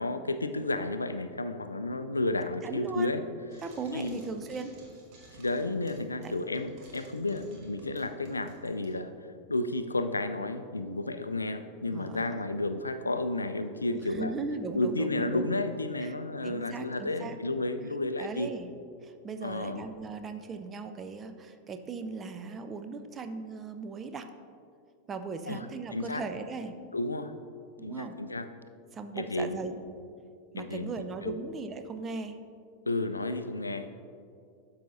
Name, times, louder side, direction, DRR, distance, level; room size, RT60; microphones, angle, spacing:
voice 1, 0.0-3.2 3.9-4.2 5.4-9.1 9.5-14.3 14.7-18.5 19.4-19.9 25.5-25.7 25.9-26.2 26.9-27.3 27.8-28.5 29.1-29.6 30.6-30.9 31.2-31.4 32.9-33.9, left 2 dB, 80° left, 9 dB, 0.3 m, -32 dB
voice 2, 2.6-3.1 3.6-4.8 6.2-6.4 11.9-12.4 13.9-15.5 16.0-16.1 16.4-17.4 18.2-18.7 19.0-24.3 25.1-26.8 27.8-28.2 28.9-29.7 30.5-32.4, right 4 dB, 20° right, 8 dB, 0.5 m, -38 dB
Frying (food), 3.5-8.9, right 2 dB, 40° right, 1.5 m, -55 dB
12.0 x 5.6 x 2.6 m, 2.4 s
figure-of-eight pair, 90°, 0 cm